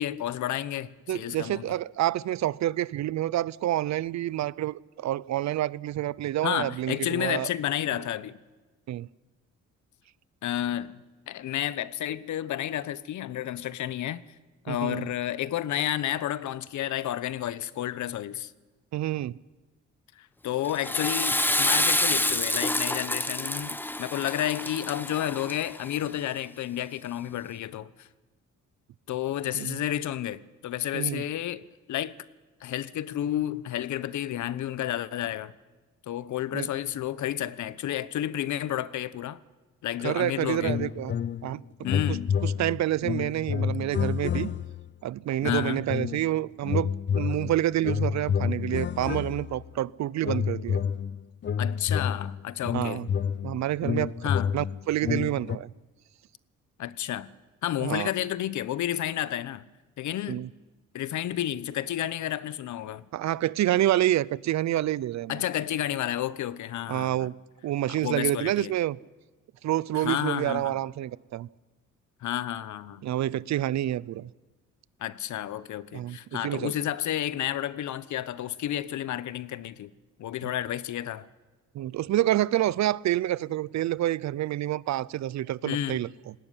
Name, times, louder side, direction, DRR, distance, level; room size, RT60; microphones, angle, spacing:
voice 1, 0.0-1.7 6.4-8.4 10.4-14.2 14.6-18.5 20.2-28.1 29.1-32.1 32.6-35.5 36.1-39.4 39.8-40.8 41.8-42.4 45.4-45.8 51.6-53.1 54.2-54.5 56.8-57.3 57.6-59.7 60.0-60.4 60.9-63.0 65.3-67.3 67.9-68.7 69.9-70.8 72.2-73.0 75.0-79.9 80.2-81.3 85.6-86.0, left 12 dB, 70° left, 1.0 m, -31 dB
voice 2, 1.1-7.5 7.9-8.0 8.9-9.1 14.7-15.1 18.9-19.4 29.5-29.8 30.9-31.2 36.5-36.7 40.0-41.1 41.4-41.6 41.9-44.5 45.0-50.8 52.7-53.1 53.4-54.3 54.5-55.7 57.8-58.1 60.3-60.5 63.1-65.4 66.9-67.4 67.6-69.0 69.6-71.5 73.0-74.3 75.9-76.7 81.7-86.3, right 13 dB, 65° right, 0.6 m, -28 dB
Water / Toilet flush, 20.6-25.9, left 1 dB, 5° left, 1.0 m, -27 dB
sound 1, 40.6-41.6 41.8-44.9 45.4-46.3 46.6-49.7 50.2-55.6, left 7 dB, 40° left, 0.6 m, -29 dB
19.0 x 17.0 x 10.0 m
cardioid pair, 90°, 30 cm